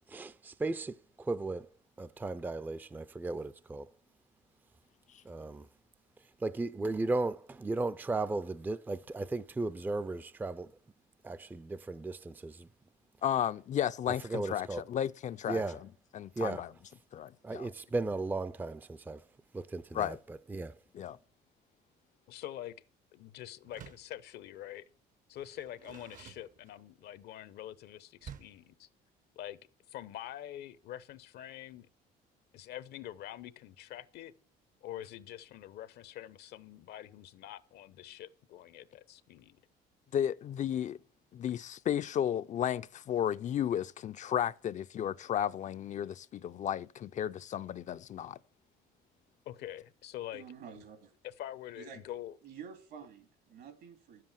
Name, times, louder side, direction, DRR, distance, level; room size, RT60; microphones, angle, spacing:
voice 1, 0.1-1.7 2.0-3.9 5.3-5.7 6.4-10.7 11.2-12.7 14.3-14.8 15.5-15.8 16.4-16.7 17.4-19.2 19.5-20.7, right 3 dB, 10° right, 0.4 m, -36 dB
voice 2, 13.2-15.6 16.1-16.7 17.1-17.7 19.9-20.2 20.9-21.2 40.1-41.0 41.3-48.4, left 10 dB, 45° left, 0.5 m, -33 dB
voice 3, 22.3-22.7 23.1-24.8 25.3-28.9 29.4-29.6 29.9-31.9 32.5-34.3 34.8-39.6 49.5-50.4 50.7-50.8 51.2-52.4, left 12 dB, 75° left, 0.8 m, -45 dB
Door, 23.6-24.2 25.3-27.0 28.2-28.7, right 8 dB, 50° right, 0.8 m, -51 dB
voice 4, 50.3-51.1 51.8-52.0 52.4-54.2, right 7 dB, 75° right, 2.5 m, -49 dB
10.5 x 7.6 x 7.3 m
cardioid pair, 110°, 17 cm